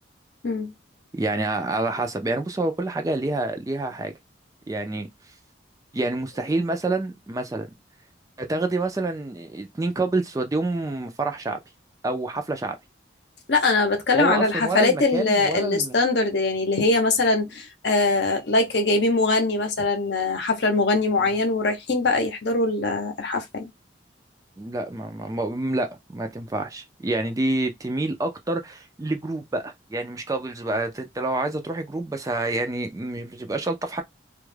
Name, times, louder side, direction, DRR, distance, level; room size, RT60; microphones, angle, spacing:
voice 1, 1.1-4.1 4.7-5.1 5.9-7.7 8.4-11.6 12.0-12.8 14.1-15.9 21.2-21.3 24.6-34.0, right 2 dB, 20° right, 0.3 m, -27 dB
voice 2, 13.5-23.7, left 3 dB, 60° left, 0.7 m, -22 dB
2.3 x 2.1 x 3.1 m
head